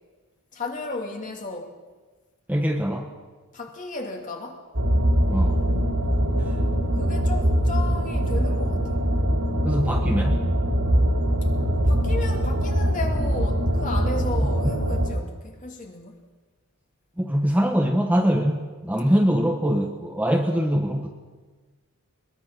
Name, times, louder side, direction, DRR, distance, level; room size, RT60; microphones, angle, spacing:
voice 1, 0.5-1.7 3.5-4.6 7.0-8.8 11.7-16.2, left 3 dB, 35° left, 2 dB, 2.7 m, -34 dB
voice 2, 2.5-3.1 5.3-5.6 9.6-10.4 14.4-14.7 17.2-21.1, equal, 5° right, 2 dB, 1.2 m, -23 dB
sound 1, 4.7-15.1, equal, 70° right, 4.1 m, -22 dB
21.5 x 21.5 x 6.0 m, 1.3 s
head